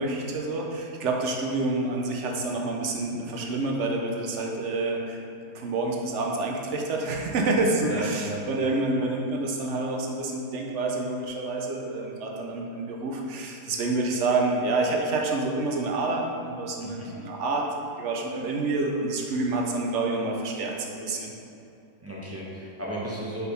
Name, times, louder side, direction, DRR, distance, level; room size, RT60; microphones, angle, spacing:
voice 1, 0.0-5.2 5.5-21.3, right 2 dB, 55° right, 0 dB, 0.9 m, -28 dB
voice 2, 7.8-8.4 16.8-17.1 22.0-23.5, right 1 dB, 10° right, -6 dB, 0.8 m, -34 dB
4.9 x 4.8 x 4.9 m, 2.6 s
omnidirectional pair, 1.7 m